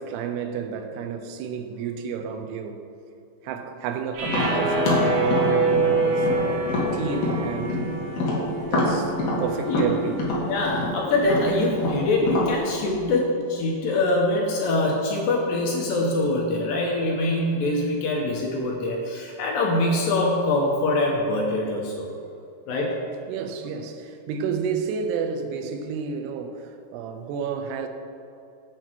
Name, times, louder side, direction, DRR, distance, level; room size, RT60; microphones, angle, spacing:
voice 1, 0.0-2.8 3.4-7.8 8.7-10.2 23.3-27.9, right 6 dB, 85° right, 7 dB, 2.8 m, -31 dB
sound 1, 4.1-10.4, right 3 dB, 70° right, 1.5 m, -26 dB
Tap, 4.2-7.9 8.1-12.5, left 2 dB, 60° left, 2.9 m, -26 dB
voice 2, 10.5-22.1 22.7-22.9, left 2 dB, 75° left, -1 dB, 2.3 m, -24 dB
8.2 x 7.5 x 4.5 m, 2.5 s
omnidirectional pair, 4.8 m